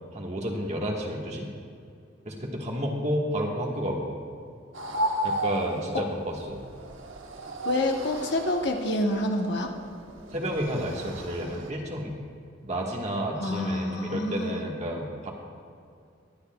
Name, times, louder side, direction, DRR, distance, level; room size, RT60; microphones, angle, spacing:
voice 1, 0.1-1.5 2.2-4.1 5.2-6.6 10.3-12.1 12.6-15.3, equal, 35° right, -1 dB, 1.4 m, -31 dB
sound 1, 4.7-11.7, right 1 dB, 85° right, 0.9 m, -34 dB
voice 2, 7.6-9.7 13.4-14.6, left 1 dB, 65° left, 3 dB, 1.0 m, -27 dB
20.5 x 9.7 x 2.3 m, 2.3 s
head